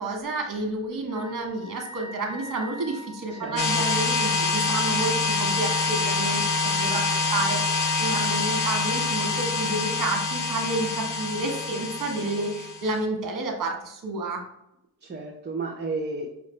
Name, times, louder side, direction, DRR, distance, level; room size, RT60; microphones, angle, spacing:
voice 1, 0.0-7.0 7.3-14.4, right 2 dB, 60° right, 1 dB, 1.3 m, -30 dB
Wind instrument woodwind instrument, 1.1-6.0, left 1 dB, 10° left, 1.2 m, -44 dB
voice 2, 3.3-3.8 15.0-16.3, right 3 dB, 30° right, -1 dB, 0.7 m, -33 dB
sound 1, 3.6-12.9, left 3 dB, 55° left, 0.8 m, -26 dB
5.6 x 2.5 x 3.2 m, 0.83 s
cardioid pair, 65°, 37 cm